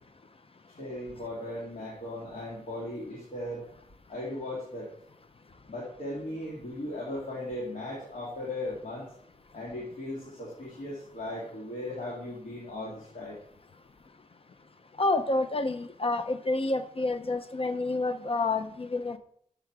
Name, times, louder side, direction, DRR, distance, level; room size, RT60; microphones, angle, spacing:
voice 1, 0.8-3.6 4.1-4.9 5.7-9.1 9.5-13.4, left 1 dB, 75° left, -5 dB, 2.4 m, -37 dB
voice 2, 15.0-19.2, left 2 dB, 40° left, 10 dB, 0.5 m, -28 dB
7.0 x 6.8 x 4.6 m, 0.65 s
wide cardioid pair, 95°, 14 cm